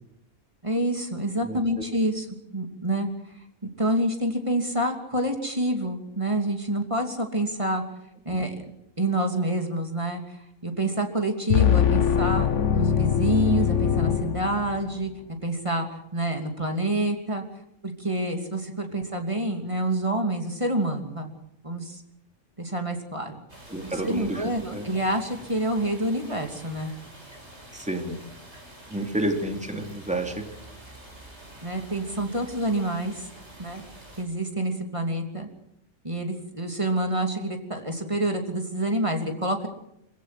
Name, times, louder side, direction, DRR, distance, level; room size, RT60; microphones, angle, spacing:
voice 1, 0.6-2.3 2.5-3.3 3.8-7.8 8.2-8.6 9.0-15.1 15.4-15.9 16.1-17.4 17.8-21.3 21.6-22.0 22.6-23.4 23.9-26.9 31.6-33.3 33.6-33.8 34.2-35.5 36.0-39.7, right 1 dB, 25° right, 4 dB, 3.0 m, -27 dB
sound 1, 11.5-15.0, left 9 dB, 70° left, 1.4 m, -22 dB
sound 2, 23.5-34.2, right 1 dB, 60° right, 6.5 m, -47 dB
voice 2, 23.7-24.8 27.7-28.2 28.9-30.5, right 1 dB, 5° right, 4 dB, 2.9 m, -30 dB
26.5 x 16.5 x 7.8 m, 0.80 s
omnidirectional pair, 1.3 m